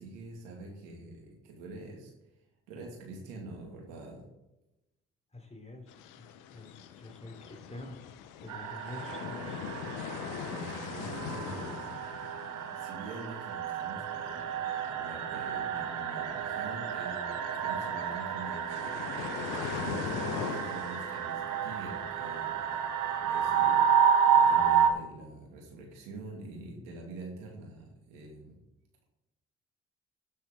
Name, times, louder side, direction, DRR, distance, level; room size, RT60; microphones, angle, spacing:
voice 1, 0.0-2.1 2.7-4.2 10.5-11.9 12.6-19.0 19.7-23.8 24.3-28.6, right 2 dB, 85° right, 0 dB, 2.4 m, -45 dB
voice 2, 5.3-6.3 6.5-8.0 8.4-9.6, left 2 dB, 20° left, 2 dB, 3.6 m, -47 dB
sound 1, 5.9-24.9, left 9 dB, 80° left, 0.8 m, -43 dB
sound 2, 8.5-24.9, right 8 dB, 70° right, 1.2 m, -30 dB
16.0 x 6.7 x 3.7 m, 0.97 s
hypercardioid pair, 50°, 31 cm